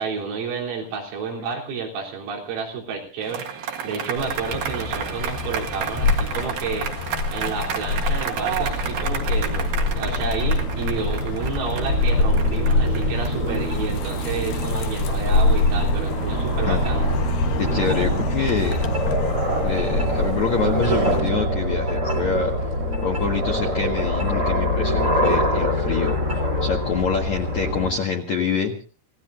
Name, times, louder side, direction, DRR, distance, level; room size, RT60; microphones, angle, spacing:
voice 1, 0.0-3.5 3.8-17.1, right 5 dB, 85° right, 0 dB, 6.2 m, -30 dB
sound 1, 3.2-14.6, right 7 dB, 60° right, 3.0 m, -31 dB
sound 2, 4.2-21.2, left 3 dB, 90° left, 1.9 m, -26 dB
sound 3, 8.5-27.9, equal, 30° right, 2.1 m, -25 dB
voice 2, 17.6-18.8 19.6-22.6 23.0-28.8, left 5 dB, 60° left, 1 dB, 2.0 m, -26 dB
28.5 x 17.5 x 2.6 m, 0.38 s
omnidirectional pair, 5.8 m